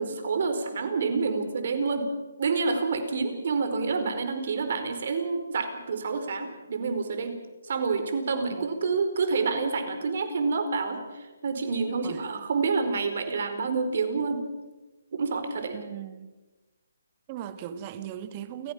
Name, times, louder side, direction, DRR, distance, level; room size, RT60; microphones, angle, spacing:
voice 1, 0.0-2.1 2.4-7.4 7.7-14.5 15.1-15.8, right 4 dB, 55° right, 8 dB, 4.5 m, -28 dB
voice 2, 15.7-16.3 17.3-18.7, right 10 dB, 30° right, 11 dB, 1.8 m, -38 dB
29.0 x 15.0 x 7.3 m, 1.2 s
hypercardioid pair, 150°, 0 cm